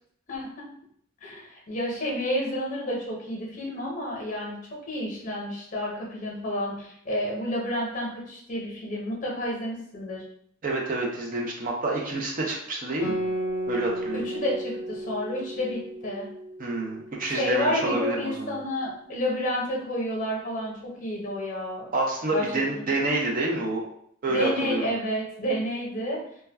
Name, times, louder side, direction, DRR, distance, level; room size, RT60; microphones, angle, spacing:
voice 1, 0.3-0.7 1.2-10.2 14.1-16.3 17.4-21.8 22.3-22.9 24.3-26.2, equal, 40° left, -2 dB, 0.8 m, -30 dB
voice 2, 10.6-13.2 13.7-14.2 16.6-18.5 21.9-23.8 24.2-24.9, right 2 dB, 40° right, -1 dB, 0.4 m, -28 dB
Guitar, 13.0-17.9, right 1 dB, 80° right, 0.9 m, -34 dB
2.2 x 2.2 x 3.3 m, 0.68 s
head